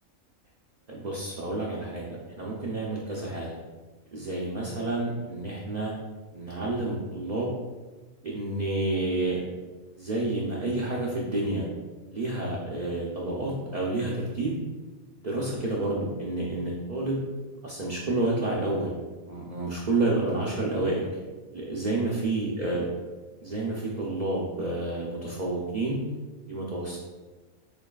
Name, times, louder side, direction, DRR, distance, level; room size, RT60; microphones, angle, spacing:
voice 1, 0.9-2.1 2.4-3.6 4.1-5.9 6.3-7.5 8.2-9.4 10.0-11.7 12.1-14.5 15.1-17.2 17.6-18.9 19.3-21.1 21.5-22.8 23.4-26.0 26.5-27.0, right 2 dB, 55° right, -4 dB, 0.4 m, -29 dB
6.8 x 2.3 x 2.3 m, 1.3 s
omnidirectional pair, 1.4 m